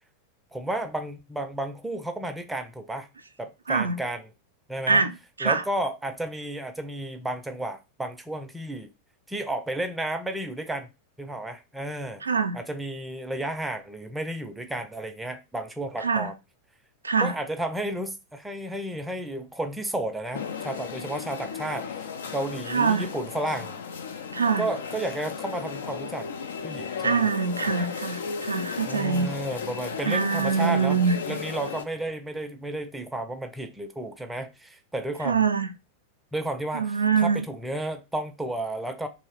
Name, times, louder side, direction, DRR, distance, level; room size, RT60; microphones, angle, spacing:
voice 1, 0.5-3.1 3.4-4.2 4.7-5.0 5.4-8.9 9.3-10.9 11.2-12.3 12.5-16.4 17.2-22.0 22.3-23.8 24.6-26.3 26.6-27.2 27.7-27.9 28.9-31.0 31.3-35.4 36.3-39.1, right 1 dB, 5° right, 0.5 m, -32 dB
voice 2, 3.7-4.0 4.9-5.1 5.4-5.6 12.2-12.6 16.0-16.3 17.0-17.3 22.7-23.1 24.3-24.6 27.0-29.3 30.1-31.4 35.2-35.7 36.7-37.4, right 5 dB, 75° right, 0.4 m, -24 dB
sound 1, 20.3-31.8, left 6 dB, 65° left, 0.4 m, -35 dB
3.0 x 2.7 x 4.4 m
figure-of-eight pair, 90°, 0 cm